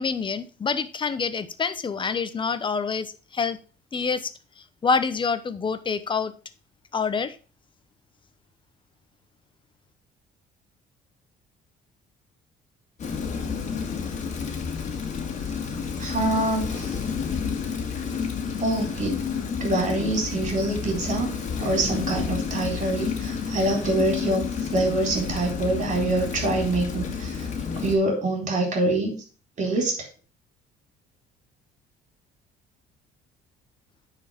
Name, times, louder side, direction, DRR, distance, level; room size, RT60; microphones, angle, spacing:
voice 1, 0.0-3.1 3.3-3.6 3.9-4.2 4.8-6.3 6.9-7.3, left 5 dB, 30° left, 12 dB, 0.9 m, -26 dB
Rain, 13.0-28.0, left 6 dB, 45° left, 2.0 m, -30 dB
voice 2, 16.0-17.0 18.6-19.2 19.6-21.3 21.6-24.4 24.7-27.5 27.8-29.1 29.6-29.9, right 2 dB, 45° right, 2 dB, 4.0 m, -25 dB
9.7 x 4.7 x 5.1 m, 0.36 s
cardioid pair, 110°, 17 cm